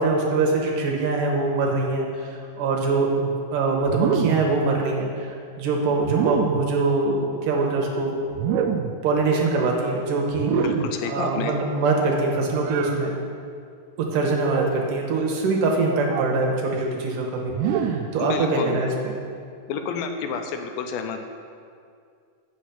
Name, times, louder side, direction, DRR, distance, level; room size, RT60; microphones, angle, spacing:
voice 1, 0.0-2.3 2.6-8.2 9.0-10.5 11.1-13.1 14.0-18.9, right 3 dB, 70° right, -1 dB, 2.5 m, -23 dB
sound 1, 3.9-4.6 6.0-6.7 8.3-9.1 10.3-11.0 12.6-13.0 14.4-14.9 16.0-16.4 17.5-18.2, right 7 dB, 90° right, 1.8 m, -26 dB
voice 2, 10.5-11.5 18.2-18.8 19.7-21.2, left 6 dB, 85° left, 6 dB, 2.4 m, -29 dB
8.1 x 6.0 x 5.8 m, 2.3 s
omnidirectional pair, 4.2 m